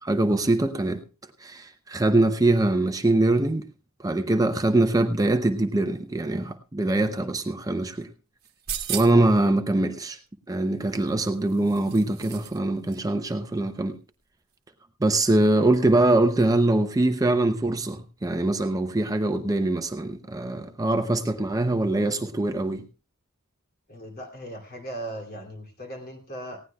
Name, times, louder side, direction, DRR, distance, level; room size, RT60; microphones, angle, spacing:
voice 1, 0.0-1.0 1.4-3.6 4.0-8.1 8.9-10.2 10.5-14.0 15.0-22.8, right 2 dB, 15° right, 8 dB, 0.5 m, -23 dB
sound 1, 8.4-9.3 10.8-12.6 12.9-13.0, right 10 dB, 45° right, 1.1 m, -36 dB
voice 2, 23.9-26.6, right 1 dB, 45° left, 3 dB, 2.6 m, -38 dB
19.0 x 16.0 x 2.2 m, 0.33 s
head